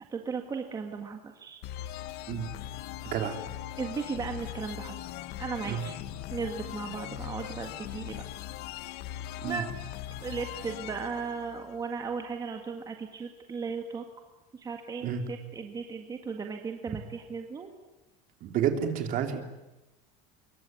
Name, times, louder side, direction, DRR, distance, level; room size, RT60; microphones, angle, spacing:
voice 1, 0.1-1.6 3.8-5.1 5.4-6.0 6.3-8.2 9.4-9.7 10.2-14.0 14.5-17.7, right 5 dB, 20° right, 4 dB, 1.9 m, -36 dB
sound 1, 1.6-12.2, left 13 dB, 60° left, 1.3 m, -40 dB
voice 2, 3.0-3.4 5.6-5.8 9.4-9.6 15.0-15.2 18.4-19.5, right 8 dB, 45° right, 5 dB, 3.4 m, -30 dB
26.0 x 23.0 x 9.6 m, 1.0 s
cardioid pair, 165°, 19 cm